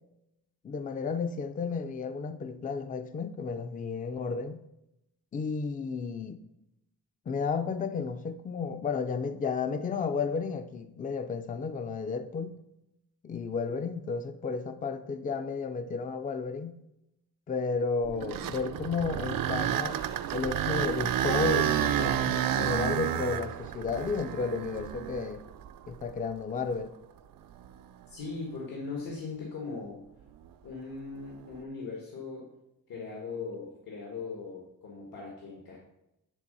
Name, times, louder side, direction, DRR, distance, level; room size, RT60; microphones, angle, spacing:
voice 1, 0.6-4.6 5.3-6.4 7.3-12.6 13.2-16.8 17.5-20.0 20.3-25.4 25.9-26.9, left 5 dB, 25° left, 0.4 m, -32 dB
sound 1, 18.0-26.1 26.7-26.8 27.5-27.7 31.2-31.5, right 10 dB, 75° right, 0.5 m, -30 dB
voice 2, 28.1-30.0 30.6-32.5 32.9-35.8, left 4 dB, 80° left, 1.7 m, -39 dB
10.0 x 3.8 x 5.4 m
wide cardioid pair, 165°, 34 cm